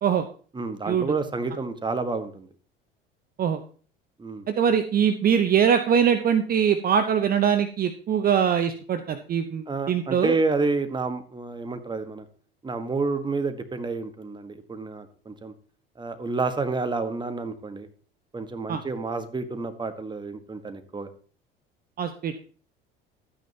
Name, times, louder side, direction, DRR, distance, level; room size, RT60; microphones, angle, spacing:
voice 1, 0.5-2.5 4.2-4.5 9.7-12.2 12.6-15.5 16.0-17.9 18.3-21.1, right 3 dB, 15° right, 8 dB, 1.4 m, -29 dB
voice 2, 4.5-10.3 18.7-18.8 22.0-22.5, right 8 dB, 30° right, 9 dB, 0.8 m, -22 dB
12.5 x 9.2 x 2.8 m, 0.41 s
figure-of-eight pair, 65°, 29 cm